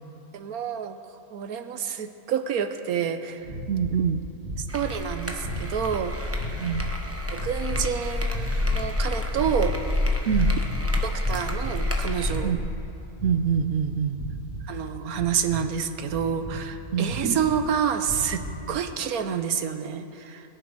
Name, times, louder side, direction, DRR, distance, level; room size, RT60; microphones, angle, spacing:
voice 1, 0.3-1.0 1.3-3.4 4.7-6.5 7.3-9.7 11.0-12.5 14.7-18.4 18.7-20.4, right 8 dB, 80° right, 9 dB, 1.3 m, -28 dB
sound 1, 3.4-4.0 4.4-5.0 5.4-6.0 6.3-6.9 7.3-7.8 8.3-8.9 9.2-9.9 10.2-10.9 11.2-11.8 12.2-12.8 13.1-13.7 14.1-14.7 15.1-15.7 16.1-16.7 17.0-17.6 18.0-18.6, equal, 25° left, 3.8 m, -36 dB
voice 2, 3.7-4.2 6.6-6.8 10.3-10.5 12.4-12.6 13.2-14.2 16.9-17.2 18.6-18.8, right 7 dB, 60° right, 10 dB, 0.8 m, -25 dB
sound 2, 4.7-12.5, left 2 dB, 10° right, 0.9 m, -28 dB
21.5 x 11.0 x 4.6 m, 2.9 s
omnidirectional pair, 1.6 m